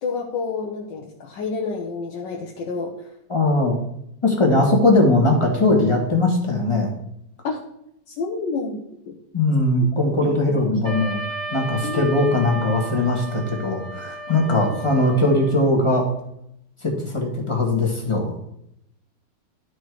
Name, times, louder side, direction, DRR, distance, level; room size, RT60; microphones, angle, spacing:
voice 1, 0.0-2.9 7.4-7.6 8.1-9.2 10.2-10.6 11.8-12.1, left 4 dB, 75° left, -1 dB, 1.6 m, -29 dB
voice 2, 3.3-3.8 4.2-6.9 9.3-11.2 11.5-16.1 16.8-18.4, left 2 dB, 15° left, 0 dB, 1.5 m, -20 dB
Wind instrument woodwind instrument, 10.8-15.7, right 2 dB, 55° right, 1.5 m, -34 dB
12.0 x 4.3 x 4.7 m, 0.77 s
omnidirectional pair, 2.0 m